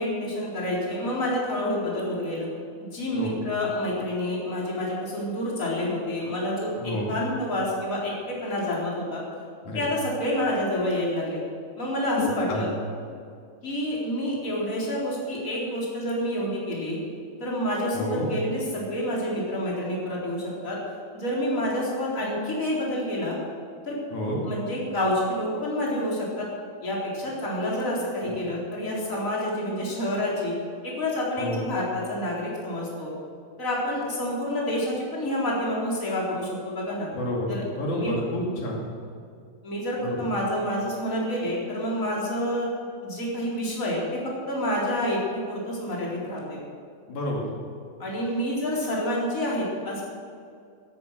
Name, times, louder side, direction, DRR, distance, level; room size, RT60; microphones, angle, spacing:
voice 1, 0.0-2.5 2.8-9.2 9.7-11.4 11.8-12.7 13.6-17.0 17.4-20.8 21.1-23.4 23.8-24.0 24.5-26.5 26.8-30.5 30.8-33.1 33.6-37.1 37.5-37.6 37.9-38.1 39.6-42.7 43.0-44.2 44.5-46.6 48.0-50.0, left 1 dB, 25° left, -5 dB, 4.3 m, -28 dB
voice 2, 6.8-7.1 9.7-9.8 12.2-12.7 17.9-18.3 24.1-24.4 31.4-31.6 37.1-38.8 40.0-40.3 47.1-47.5, left 1 dB, 80° left, -2 dB, 3.9 m, -29 dB
17.5 x 11.0 x 6.7 m, 2.3 s
omnidirectional pair, 3.4 m